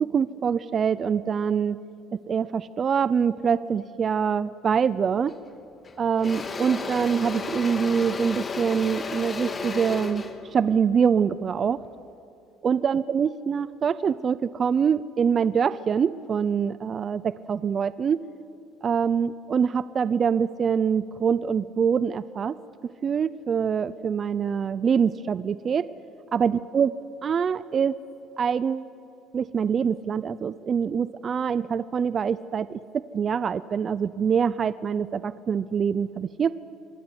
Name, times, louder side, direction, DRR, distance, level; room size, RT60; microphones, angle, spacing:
voice 1, 0.0-1.8 2.3-5.3 6.0-10.2 10.5-11.8 12.6-18.2 18.8-22.5 23.0-25.9 26.3-26.9 27.2-28.0 28.4-28.9 29.3-36.5, right 7 dB, 40° right, 16 dB, 0.6 m, -24 dB
Engine / Drill, 5.3-5.5 5.8-12.0, left 4 dB, 30° left, 1.9 m, -34 dB
25.0 x 20.5 x 9.8 m, 2.6 s
cardioid pair, 105°, 0 cm